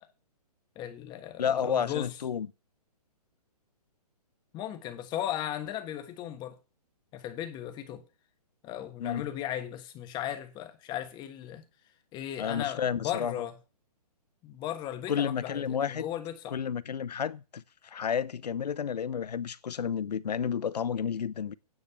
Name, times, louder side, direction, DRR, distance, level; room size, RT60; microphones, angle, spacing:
voice 1, 0.7-2.2 4.5-6.6 7.1-8.0 8.6-11.6 12.1-13.6 14.4-16.6, left 11 dB, 20° left, 1.4 m, -36 dB
voice 2, 1.4-2.5 9.0-9.3 12.4-13.3 15.1-16.1 16.5-17.6 17.9-21.5, left 7 dB, 85° left, 0.7 m, -31 dB
9.6 x 5.3 x 6.8 m
hypercardioid pair, 145°, 20 cm